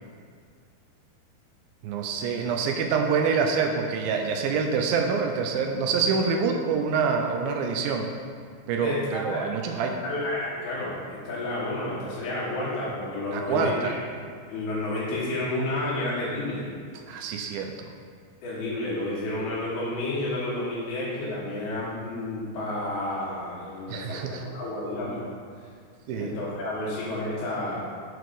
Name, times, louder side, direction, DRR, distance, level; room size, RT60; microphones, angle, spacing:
voice 1, 1.8-8.1 8.7-10.0 13.3-14.0 17.1-17.9 23.9-24.4 26.1-26.3, right 5 dB, 80° right, 3 dB, 2.2 m, -26 dB
voice 2, 8.8-9.4 10.0-13.9 14.5-16.7 18.4-25.2 26.2-27.8, left 2 dB, 90° left, -7 dB, 3.7 m, -30 dB
8.1 x 4.7 x 4.0 m, 2.1 s
omnidirectional pair, 4.4 m